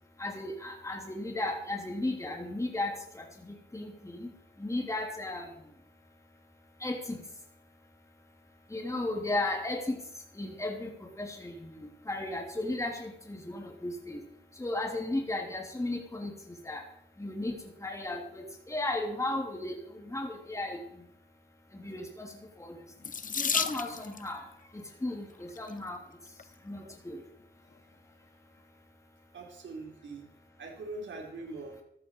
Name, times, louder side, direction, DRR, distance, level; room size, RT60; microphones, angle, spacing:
voice 1, 0.2-4.3 4.6-5.5 6.8-7.2 8.7-9.9 10.3-14.2 14.6-16.3 16.6-16.8 17.2-17.5 17.8-20.8 21.7-22.3 22.6-22.7 23.4-24.4 25.0-26.0 26.7-27.2, left 2 dB, 15° left, 2 dB, 3.2 m, -35 dB
Water tap faucet / Sink (filling or washing), 23.0-24.3 25.3-25.7 26.4-26.5 26.8-27.0, left 6 dB, 40° left, 0.9 m, -32 dB
voice 2, 29.3-30.2 30.6-31.7, right 2 dB, 70° right, 0 dB, 4.6 m, -42 dB
14.0 x 13.5 x 4.8 m, 0.70 s
cardioid pair, 90°, 20 cm